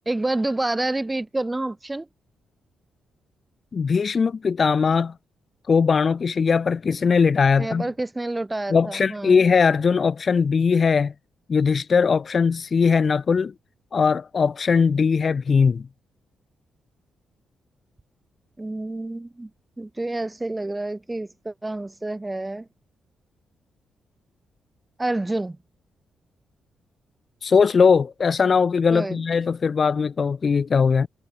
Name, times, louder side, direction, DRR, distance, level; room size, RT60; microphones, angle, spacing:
voice 1, 0.1-2.1 7.6-9.4 18.6-19.5 19.8-22.7 25.0-25.6 28.9-29.2, right 2 dB, 10° right, 2.5 m, -28 dB
voice 2, 3.7-5.1 5.7-7.9 8.7-11.1 11.5-13.5 13.9-15.8 27.4-31.1, left 5 dB, 35° left, 0.6 m, -20 dB
cardioid pair, 150°, 0 cm